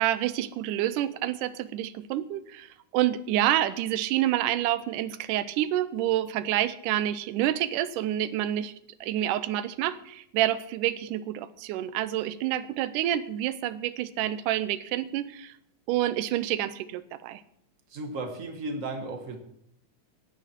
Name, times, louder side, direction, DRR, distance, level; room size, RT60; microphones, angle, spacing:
voice 1, 0.0-8.7 9.0-15.5 15.9-17.4, right 13 dB, 90° right, 15 dB, 2.2 m, -28 dB
voice 2, 17.9-19.4, right 2 dB, 40° right, 4 dB, 1.1 m, -34 dB
16.0 x 10.5 x 4.5 m, 0.73 s
omnidirectional pair, 3.6 m